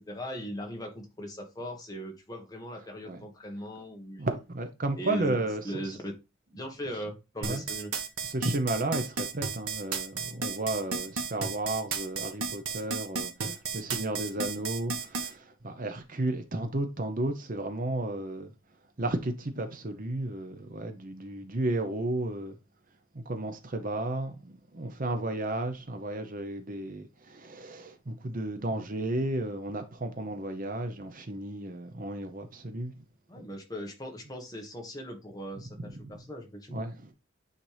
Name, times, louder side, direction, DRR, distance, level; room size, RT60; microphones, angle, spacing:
voice 1, 0.0-4.2 5.0-5.3 5.6-6.1 6.5-7.9 13.4-13.5 33.3-36.8, equal, 15° left, 1.5 m, -39 dB
voice 2, 4.2-5.9 7.5-7.6 8.2-18.5 19.0-22.6 23.1-32.9 33.4-33.5 35.8-36.2 36.7-37.1, right 2 dB, 40° right, 0.8 m, -33 dB
sound 1, 7.4-15.3, right 5 dB, 85° right, 1.4 m, -33 dB
8.9 x 4.2 x 3.4 m
head